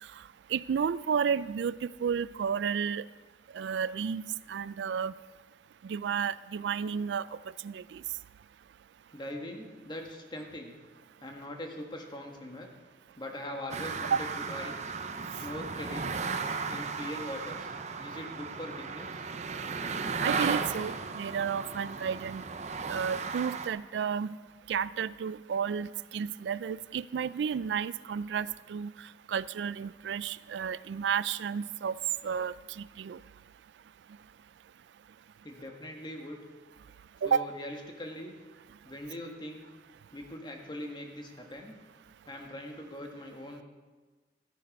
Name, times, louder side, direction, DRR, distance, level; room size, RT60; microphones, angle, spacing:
voice 1, 0.5-3.0 3.5-4.2 4.5-5.1 5.8-7.3 7.6-8.0 14.1-14.2 20.2-22.4 22.9-24.3 24.7-28.9 29.3-32.0 32.2-33.2 37.2-37.5, right 7 dB, 85° right, 18 dB, 0.3 m, -32 dB
voice 2, 9.1-10.7 11.2-12.7 13.2-14.8 15.4-16.1 16.7-19.2 35.4-36.4 37.2-38.4 38.8-39.6 40.1-41.7 42.3-43.6, left 1 dB, 25° left, 2 dB, 1.5 m, -41 dB
sound 1, 13.7-23.7, right 5 dB, 40° right, 0.7 m, -35 dB
13.5 x 9.5 x 5.3 m, 1.3 s
head